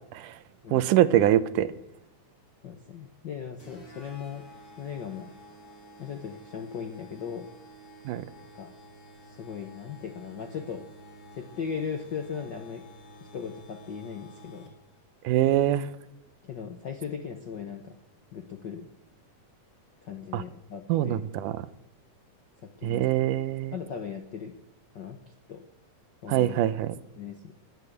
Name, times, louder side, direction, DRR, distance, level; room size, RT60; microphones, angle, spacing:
voice 1, 0.7-1.7 8.1-8.2 15.2-15.9 20.3-20.4 20.9-21.5 22.8-23.8 26.3-26.9, right 12 dB, 90° right, 14 dB, 2.3 m, -24 dB
voice 2, 2.6-4.4 4.8-5.3 6.0-7.5 8.5-8.7 9.4-10.9 11.3-12.8 13.3-14.7 16.4-18.0 18.3-18.9 20.0-21.2 22.6-23.3 23.7-24.5 24.9-25.2 25.5-25.6 26.2-26.6 27.2-27.5, left 7 dB, 70° left, 5 dB, 1.0 m, -38 dB
sound 1, 3.6-15.0, equal, 30° left, 3.2 m, -51 dB
20.0 x 7.5 x 8.1 m, 0.86 s
omnidirectional pair, 3.6 m